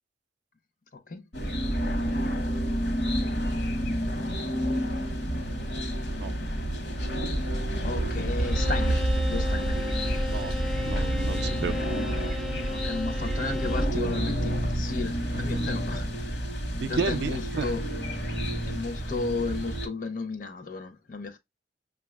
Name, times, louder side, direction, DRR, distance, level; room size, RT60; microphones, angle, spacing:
sound 1, 1.3-19.9, equal, 70° left, 1.0 m, -29 dB
voice 1, 7.8-9.0 9.3-9.9 12.6-16.4 16.9-17.8 18.7-21.4, left 3 dB, 50° left, 0.6 m, -34 dB
Bowed string instrument, 8.4-14.1, left 1 dB, ahead, 0.3 m, -35 dB
voice 2, 10.2-11.8 15.3-15.7 16.8-17.7, right 5 dB, 75° right, 0.4 m, -33 dB
5.7 x 2.3 x 2.2 m
head